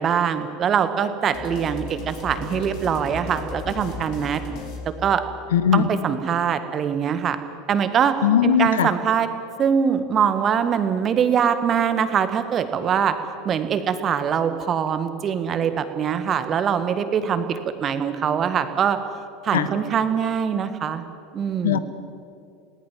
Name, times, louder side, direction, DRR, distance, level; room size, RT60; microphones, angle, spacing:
voice 1, 0.0-4.4 4.8-5.2 5.7-7.4 7.7-8.2 8.4-9.3 9.6-13.2 13.4-19.0 19.4-21.0 21.3-21.8, right 7 dB, 35° right, 10 dB, 1.7 m, -23 dB
sound 1, 1.3-5.6, left 5 dB, 50° left, 3.5 m, -36 dB
voice 2, 5.5-5.9 8.2-8.9 19.5-19.7 21.6-21.8, left 8 dB, 70° left, 13 dB, 1.0 m, -19 dB
22.5 x 18.5 x 7.5 m, 2.4 s
figure-of-eight pair, 75°, 0 cm